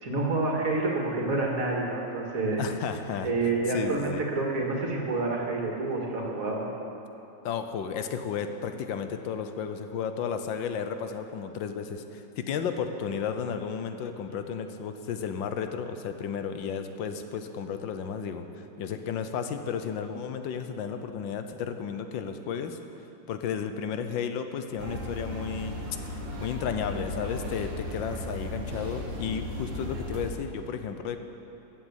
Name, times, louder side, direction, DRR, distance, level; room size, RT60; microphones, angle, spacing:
voice 1, 0.0-2.7 3.2-6.7, right 3 dB, 45° right, -1 dB, 2.4 m, -28 dB
voice 2, 2.6-3.3 3.7-4.2 7.4-18.4 18.8-22.8 23.3-25.8 26.1-31.2, left 7 dB, 85° left, 8 dB, 1.6 m, -33 dB
sound 1, 24.8-30.3, left 1 dB, 85° right, 2.5 m, -36 dB
14.5 x 8.3 x 8.1 m, 3.0 s
omnidirectional pair, 2.0 m